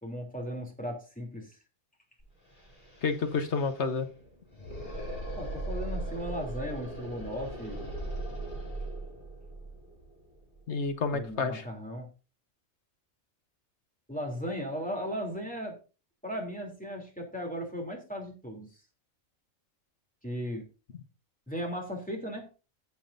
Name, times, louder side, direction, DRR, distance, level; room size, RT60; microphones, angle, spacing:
voice 1, 0.0-1.6 5.3-7.9 11.1-12.1 14.1-15.8 16.2-18.7 20.2-20.6 21.5-22.5, equal, 5° left, 0 dB, 3.0 m, -36 dB
sound 1, 2.2-2.3 2.5-11.3, right 2 dB, 35° left, 3.2 m, -39 dB
voice 2, 3.0-4.1 10.7-11.6, left 4 dB, 60° left, 9 dB, 1.2 m, -29 dB
17.5 x 7.2 x 2.6 m, 0.34 s
omnidirectional pair, 1.4 m